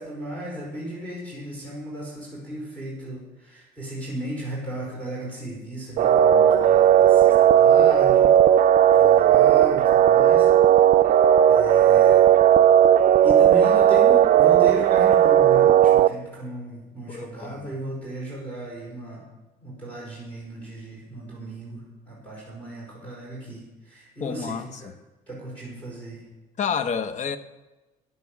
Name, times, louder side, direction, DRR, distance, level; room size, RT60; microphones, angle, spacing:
voice 1, 0.0-8.3 8.9-10.5 11.5-12.2 13.2-19.2 19.6-24.7 25.3-26.2, right 1 dB, 10° left, -6 dB, 4.7 m, -35 dB
sound 1, 6.0-16.1, right 10 dB, 50° right, 0.4 m, -16 dB
voice 2, 17.1-17.7 24.2-24.9 26.6-27.4, left 6 dB, 45° left, 11 dB, 0.9 m, -29 dB
11.0 x 9.7 x 6.0 m, 1.1 s
cardioid pair, 110°, 17 cm